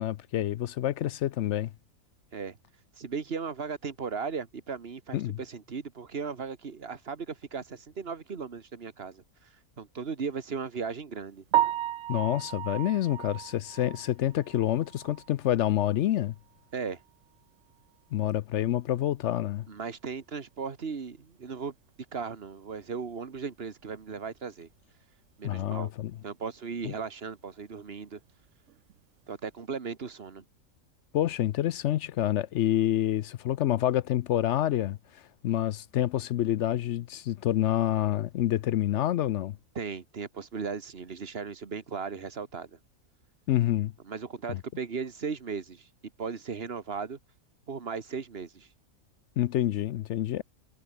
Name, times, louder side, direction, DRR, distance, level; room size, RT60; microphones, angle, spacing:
voice 1, 0.0-1.7 5.1-5.4 12.1-16.3 18.1-19.7 25.4-26.1 26.8-26.9 31.1-39.6 43.5-43.9 44.5-44.6 49.4-50.4, left 12 dB, 65° left, 0.7 m, -27 dB
voice 2, 3.0-9.2 9.8-11.4 16.7-17.0 19.7-21.7 22.1-24.7 25.4-25.9 26.2-28.2 29.3-30.5 39.8-42.8 44.1-45.9 46.2-47.2 47.7-48.7, right 5 dB, 45° right, 1.8 m, -37 dB
Piano, 11.5-15.5 15.8-16.0 16.5-16.6 16.9-17.0 20.1-20.2 28.7-28.9, right 12 dB, 65° right, 0.9 m, -32 dB
omnidirectional pair, 1.5 m